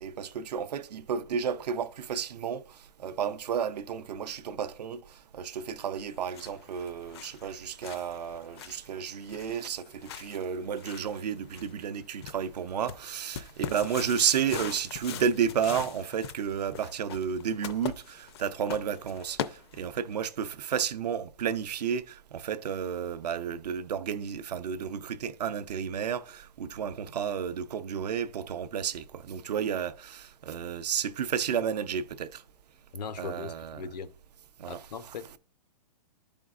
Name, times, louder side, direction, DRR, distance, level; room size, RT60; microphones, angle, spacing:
voice 1, 0.0-32.4 33.2-33.8 34.6-34.8, right 8 dB, 90° right, 0.6 m, -32 dB
sound 1, 6.0-20.1, left 9 dB, 40° left, 0.4 m, -42 dB
voice 2, 32.9-34.1 34.7-35.4, left 5 dB, 90° left, 0.8 m, -39 dB
11.0 x 5.2 x 2.4 m
hypercardioid pair, 165°, 20 cm